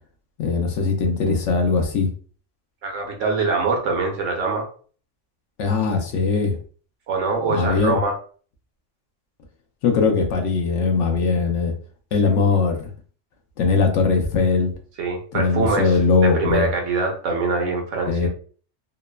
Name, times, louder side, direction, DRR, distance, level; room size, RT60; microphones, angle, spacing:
voice 1, 0.4-2.1 5.6-6.6 7.5-8.0 9.8-11.7 12.1-12.9 13.6-14.7 15.3-16.7 18.1-18.3, left 4 dB, 75° left, 3 dB, 0.9 m, -20 dB
voice 2, 2.8-4.7 7.1-8.1 12.2-12.5 15.0-18.3, right 3 dB, 75° right, 2 dB, 1.0 m, -24 dB
3.1 x 2.0 x 2.2 m, 0.43 s
omnidirectional pair, 1.3 m